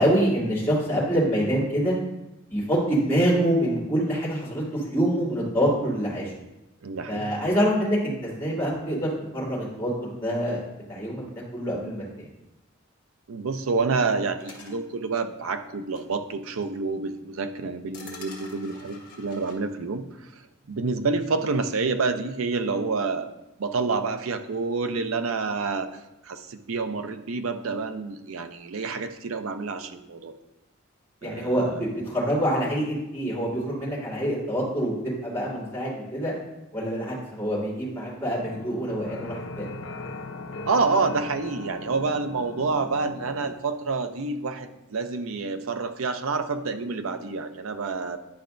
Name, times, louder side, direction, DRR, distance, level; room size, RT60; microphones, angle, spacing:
voice 1, 0.0-2.0 2.5-6.3 7.1-10.6 10.9-11.3 11.5-12.3 31.2-36.3 36.7-39.7, equal, 10° left, -7 dB, 2.6 m, -26 dB
voice 2, 6.8-7.3 13.3-20.3 20.7-23.3 23.6-25.9 26.2-30.3 31.2-31.8 40.7-48.2, right 4 dB, 85° right, 8 dB, 0.6 m, -28 dB
sound 1, 14.4-14.8 16.0-16.1 16.6-16.7 17.9-19.5, left 3 dB, 45° left, 1.6 m, -45 dB
sound 2, 38.4-43.6, left 2 dB, 70° left, 0.6 m, -39 dB
10.5 x 5.5 x 2.6 m, 0.96 s
head